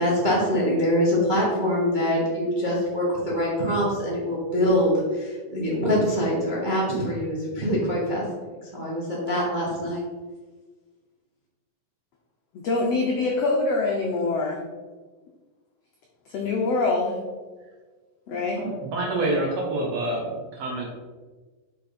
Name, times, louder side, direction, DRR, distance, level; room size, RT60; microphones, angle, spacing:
voice 1, 0.0-10.0, equal, 45° right, -6 dB, 0.6 m, -24 dB
voice 2, 12.5-14.6 16.3-17.2 18.3-18.6, left 3 dB, 85° left, -1 dB, 1.4 m, -24 dB
voice 3, 18.3-20.9, right 2 dB, 65° right, -2 dB, 1.8 m, -27 dB
6.2 x 5.8 x 4.3 m, 1.4 s
omnidirectional pair, 4.0 m